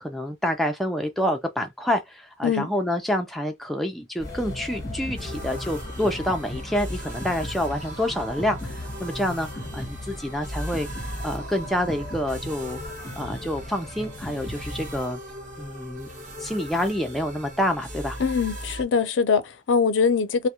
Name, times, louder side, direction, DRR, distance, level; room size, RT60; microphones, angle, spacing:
voice 1, 0.0-9.5 9.7-10.9 11.2-12.8 13.2-15.2 15.6-16.1 16.4-18.2, left 1 dB, ahead, 0.3 m, -27 dB
sound 1, 4.2-15.0, left 1 dB, 20° left, 0.7 m, -37 dB
sound 2, 5.2-18.8, equal, 40° right, 1.1 m, -38 dB
voice 2, 18.2-20.5, left 5 dB, 80° left, 0.4 m, -22 dB
2.2 x 2.0 x 2.8 m
head